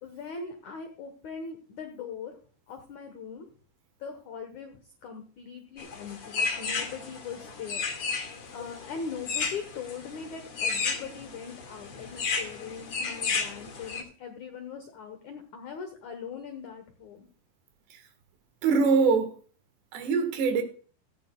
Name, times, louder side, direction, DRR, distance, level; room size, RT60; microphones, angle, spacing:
voice 1, 0.0-2.4 2.7-3.5 4.0-7.8 8.5-17.3, left 6 dB, 75° left, 6 dB, 1.7 m, -40 dB
sound 1, 5.8-14.0, left 5 dB, 45° left, 1.8 m, -33 dB
voice 2, 18.6-19.3 19.9-20.6, right 5 dB, 70° right, 7 dB, 3.6 m, -23 dB
17.0 x 14.0 x 2.3 m, 0.40 s
omnidirectional pair, 5.2 m